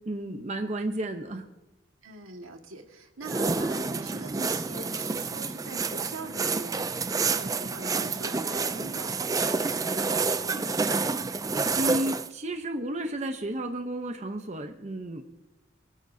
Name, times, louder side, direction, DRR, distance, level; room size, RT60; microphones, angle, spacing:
voice 1, 0.1-1.4 11.7-15.2, right 1 dB, 35° right, 5 dB, 0.8 m, -32 dB
voice 2, 2.0-11.2, right 2 dB, 90° right, 3 dB, 1.8 m, -43 dB
sound 1, 3.2-12.3, right 4 dB, 15° right, 0.3 m, -29 dB
23.5 x 12.5 x 2.7 m, 0.97 s
head